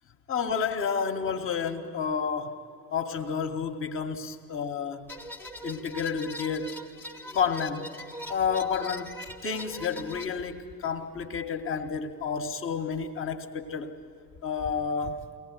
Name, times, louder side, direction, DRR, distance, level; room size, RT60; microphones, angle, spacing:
voice 1, 0.3-2.6 2.9-5.1 5.6-6.7 7.3-7.9 8.2-13.9 14.4-15.3, left 6 dB, 25° left, 1.6 m, -30 dB
sound 1, 5.1-10.3, equal, 5° left, 1.4 m, -41 dB
23.5 x 18.0 x 9.2 m
figure-of-eight pair, 75°, 50 cm